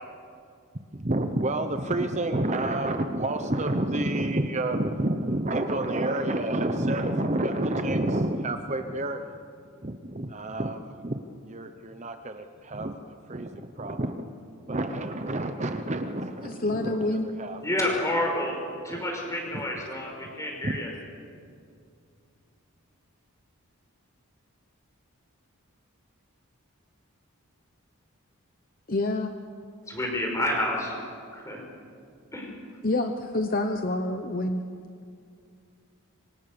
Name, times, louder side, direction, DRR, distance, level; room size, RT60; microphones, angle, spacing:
voice 1, 0.9-9.4 9.8-14.3 14.7-17.9 18.9-19.0 19.5-19.9 20.6-20.8, right 1 dB, 30° right, 7 dB, 0.9 m, -29 dB
voice 2, 16.4-17.3 28.9-29.3 32.8-34.6, left 2 dB, 40° left, 6 dB, 1.0 m, -27 dB
voice 3, 17.6-18.6 18.8-20.9 29.9-30.9 31.3-31.6 32.3-32.5, left 1 dB, 15° left, 0 dB, 5.3 m, -29 dB
26.5 x 25.0 x 6.9 m, 2.4 s
head